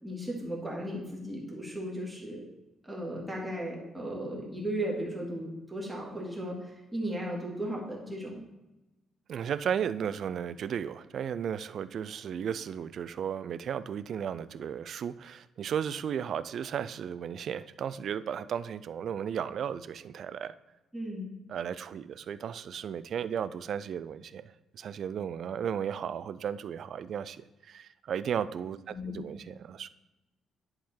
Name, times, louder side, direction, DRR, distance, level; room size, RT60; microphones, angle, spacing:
voice 1, 0.0-2.4 2.8-8.4 20.9-21.3 28.9-29.2, right 1 dB, 5° right, -4 dB, 2.0 m, -36 dB
voice 2, 9.3-20.5 21.5-29.9, right 8 dB, 55° right, 16 dB, 0.3 m, -35 dB
10.5 x 3.7 x 4.3 m, 1.0 s
cardioid pair, 130°, 0 cm